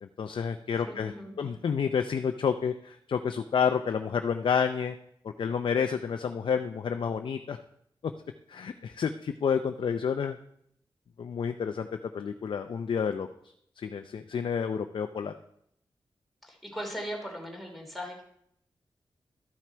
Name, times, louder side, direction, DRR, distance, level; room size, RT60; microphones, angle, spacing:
voice 1, 0.0-1.1 1.4-5.0 5.4-7.6 8.5-10.4 11.2-11.9 12.1-13.3 13.8-15.3, left 6 dB, 70° left, 7 dB, 0.5 m, -29 dB
voice 2, 0.9-1.6 16.4-18.2, equal, ahead, 0 dB, 2.9 m, -39 dB
13.0 x 5.9 x 4.5 m, 0.72 s
wide cardioid pair, 80°, 9 cm